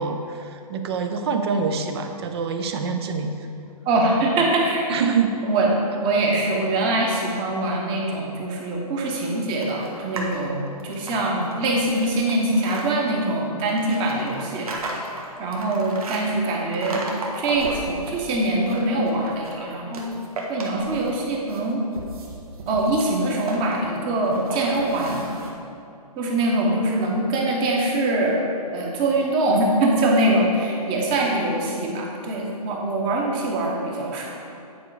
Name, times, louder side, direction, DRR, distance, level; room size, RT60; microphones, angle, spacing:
voice 1, 0.0-3.5 4.9-5.4, right 5 dB, 40° right, 6 dB, 0.7 m, -25 dB
voice 2, 3.8-4.9 5.4-5.7 6.0-14.7 15.4-17.0 17.4-20.1 20.5-21.8 22.7-25.2 26.2-28.4 28.7-34.4, right 2 dB, 25° right, -1 dB, 1.2 m, -23 dB
sound 1, 9.6-10.4 10.8-12.8 13.7-16.2 16.7-18.1 18.5-19.6 19.9-21.2 21.5-25.5, right 2 dB, 70° right, 1.5 m, -34 dB
9.5 x 4.8 x 4.9 m, 2.6 s
hypercardioid pair, 145°, 20 cm